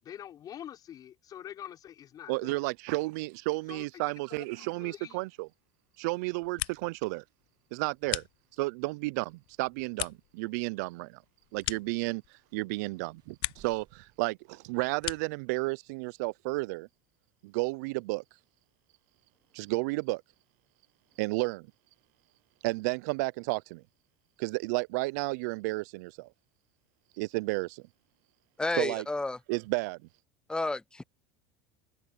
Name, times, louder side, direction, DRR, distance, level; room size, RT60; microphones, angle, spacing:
voice 1, 0.0-2.6 3.7-4.0 4.3-5.2, left 10 dB, 45° left, 5.8 m, -46 dB
voice 2, 2.3-5.5 6.0-7.2 7.7-8.2 8.6-11.2 11.5-12.2 12.5-16.9 17.4-18.2 19.5-20.2 21.2-21.7 22.6-23.8 24.4-26.3 27.2-27.8 28.8-29.0 29.5-30.0, right 25 dB, 75° right, 0.6 m, -32 dB
Gunshot gunfire, 4.5-5.7, left 15 dB, 90° left, 4.5 m, -64 dB
sound 1, 6.3-7.1 7.4-8.8 9.3-12.5 12.9-13.8 14.1-15.5, left 22 dB, 65° left, 0.6 m, -40 dB
sound 2, 13.2-14.3, right 11 dB, 50° right, 2.3 m, -60 dB
voice 3, 28.6-29.4 30.5-31.0, left 2 dB, 10° left, 0.9 m, -31 dB
hypercardioid pair, 90°, 9 cm